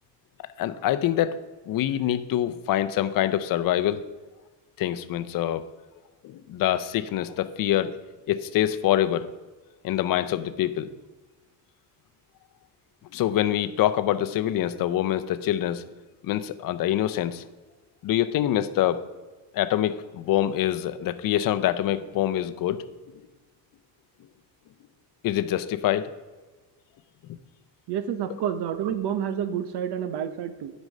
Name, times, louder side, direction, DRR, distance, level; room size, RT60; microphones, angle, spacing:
voice 1, 0.4-4.0 4.8-5.7 6.2-8.0 8.3-9.3 9.8-10.9 13.1-15.8 16.2-17.4 18.0-19.0 19.5-22.8 25.2-26.1, left 12 dB, 50° left, 11 dB, 0.6 m, -25 dB
voice 2, 27.9-30.7, right 9 dB, 65° right, 12 dB, 0.9 m, -29 dB
9.4 x 5.3 x 6.5 m, 1.3 s
cardioid pair, 155°, 42 cm